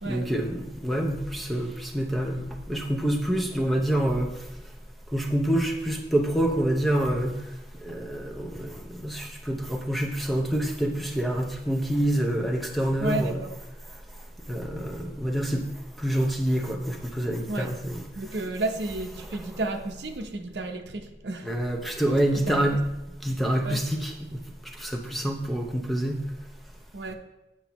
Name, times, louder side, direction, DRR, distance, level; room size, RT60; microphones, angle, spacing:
voice 1, 0.1-4.3 5.1-7.3 7.8-8.7 9.0-13.4 14.5-15.6 16.0-18.1 19.3-19.4 21.4-22.8 23.2-24.4 24.8-26.2, right 1 dB, ahead, 0.7 m, -27 dB
voice 2, 13.0-13.5 17.5-17.8 18.1-21.5 22.4-22.7 23.6-23.8 26.9-27.1, right 2 dB, 80° right, 0.8 m, -32 dB
8.7 x 8.0 x 3.0 m
head